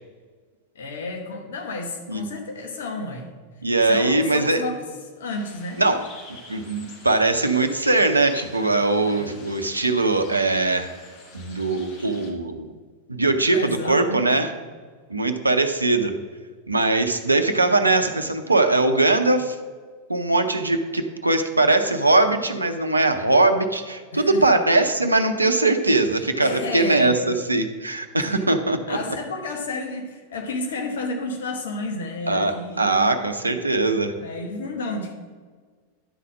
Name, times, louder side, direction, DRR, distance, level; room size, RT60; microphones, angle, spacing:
voice 1, 0.7-3.3 3.8-4.8 5.1-5.8 9.0-9.3 13.4-14.2 24.1-24.4 26.4-27.2 28.2-28.5 28.9-33.1 34.2-35.1, left 2 dB, 60° left, 4 dB, 1.1 m, -31 dB
voice 2, 3.6-4.6 5.8-6.0 6.5-10.9 11.3-12.7 13.1-14.5 15.1-16.1 16.7-19.6 20.1-29.0 32.3-32.5 32.8-34.1, right 2 dB, 80° right, 8 dB, 0.7 m, -21 dB
sound 1, 5.3-12.3, left 3 dB, 45° left, 1.5 m, -45 dB
11.0 x 4.2 x 6.1 m, 1.5 s
figure-of-eight pair, 90°, 0 cm